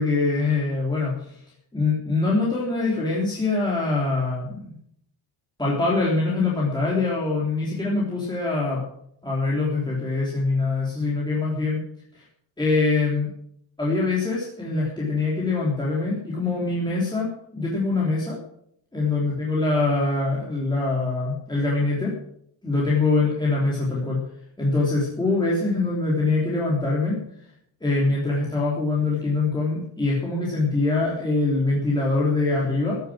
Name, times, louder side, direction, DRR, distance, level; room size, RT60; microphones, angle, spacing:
voice 1, 0.0-1.4 1.7-4.7 5.6-8.8 9.2-11.8 12.6-13.3 13.8-18.4 18.9-22.1 22.6-24.2 24.6-27.2 27.8-33.0, left 3 dB, 10° left, -6 dB, 3.5 m, -23 dB
16.0 x 10.0 x 6.3 m, 0.69 s
cardioid pair, 180°, 48 cm